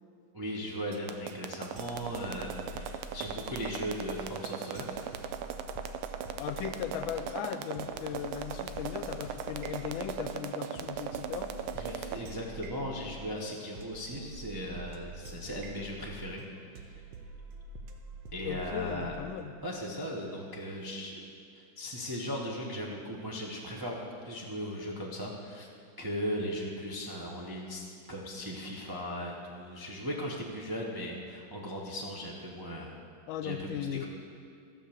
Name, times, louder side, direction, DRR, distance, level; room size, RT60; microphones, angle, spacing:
voice 1, 0.3-5.0 11.7-16.4 16.7-17.0 18.3-19.1 19.6-25.7 26.0-33.0 33.4-34.0, equal, 35° right, -3 dB, 0.3 m, -38 dB
sound 1, 0.9-12.2, right 8 dB, 85° right, 1.5 m, -38 dB
sound 2, 1.8-19.5, right 2 dB, 70° right, 1.4 m, -47 dB
voice 2, 6.4-11.5 18.4-19.5 33.3-34.1, left 9 dB, 75° left, 11 dB, 1.3 m, -37 dB
14.0 x 5.5 x 7.0 m, 2.3 s
omnidirectional pair, 2.3 m